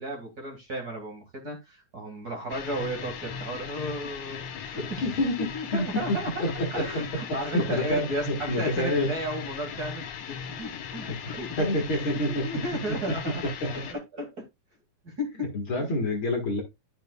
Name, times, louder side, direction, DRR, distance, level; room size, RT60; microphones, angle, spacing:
voice 1, 0.0-6.4 6.7-11.7 12.1-13.5 13.8-14.3 15.0-15.3, equal, 35° right, 2.3 m, -34 dB
sound 1, 2.5-13.9, left 7 dB, 75° left, 2.6 m, -38 dB
voice 2, 5.0-5.5 5.7-6.8 7.5-9.1 11.2-12.4 13.6-13.8 15.4-16.6, left 1 dB, 45° left, 2.2 m, -27 dB
12.0 x 6.6 x 2.3 m
omnidirectional pair, 3.4 m